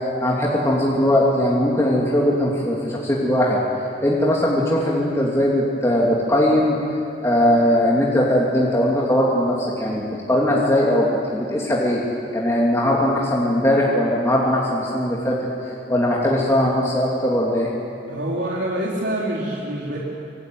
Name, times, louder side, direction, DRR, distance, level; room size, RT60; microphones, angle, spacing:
voice 1, 0.2-3.6 4.0-6.7 7.2-12.0 12.3-15.4 15.9-17.7, left 1 dB, 15° left, -4 dB, 3.0 m, -19 dB
voice 2, 18.1-20.0, right 1 dB, 80° right, -4 dB, 3.7 m, -26 dB
25.5 x 25.0 x 9.6 m, 2.8 s
head